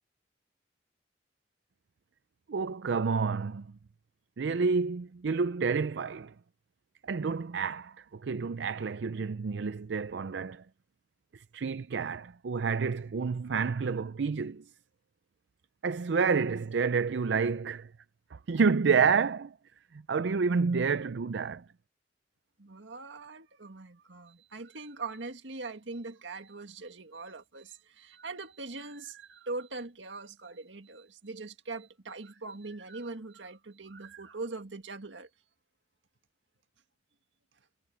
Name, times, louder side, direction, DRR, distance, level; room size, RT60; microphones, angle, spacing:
voice 1, 2.5-3.7 4.4-6.3 7.0-10.6 11.3-14.6 15.8-17.9 18.3-19.5 20.1-21.6, right 5 dB, 70° right, 0.5 m, -29 dB
voice 2, 22.6-35.3, right 3 dB, 85° right, 1.8 m, -42 dB
head